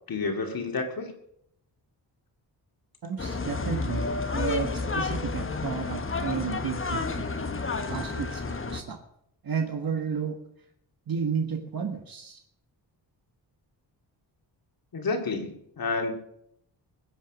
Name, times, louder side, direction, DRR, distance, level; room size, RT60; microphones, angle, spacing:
voice 1, 0.1-1.1 14.9-16.1, left 3 dB, 50° left, 4 dB, 2.5 m, -30 dB
voice 2, 3.0-4.0 4.3-7.3 7.9-8.4 8.7-9.0 9.4-10.4 11.1-12.4, right 6 dB, 55° right, 4 dB, 1.5 m, -32 dB
sound 1, 3.2-8.8, left 3 dB, 30° left, 1.1 m, -30 dB
21.5 x 7.9 x 6.2 m, 0.74 s
wide cardioid pair, 145°, 44 cm